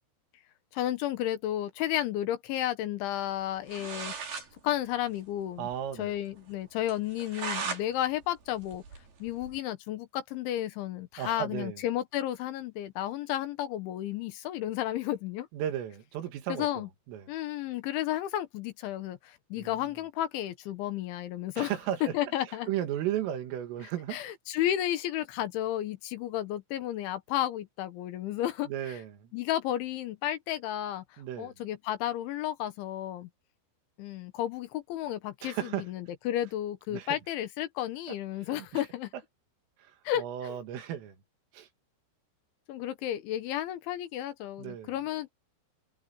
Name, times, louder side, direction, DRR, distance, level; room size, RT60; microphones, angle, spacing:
voice 1, 0.7-4.1 4.6-5.7 6.0-8.8 9.2-15.5 16.5-16.9 17.3-21.7 22.0-22.7 24.1-29.0 29.3-33.3 34.0-39.1 40.0-40.6 42.7-45.3, left 12 dB, 75° left, 3.5 m, -32 dB
sound 1, 3.4-3.5 3.7-4.5 4.8-4.9 5.2-5.3 5.7-5.8 6.2-6.3 6.9-7.8 8.2-9.6, right 5 dB, 50° right, 6.7 m, -37 dB
voice 2, 5.6-6.2 11.2-11.8 15.5-17.3 19.6-19.8 21.6-22.2 22.5-24.2 28.7-29.3 31.2-31.5 35.4-35.9 36.9-37.2 38.5-38.8 39.8-41.2 41.5-41.7 44.6-44.9, right 11 dB, 85° right, 4.7 m, -35 dB
omnidirectional pair, 5.7 m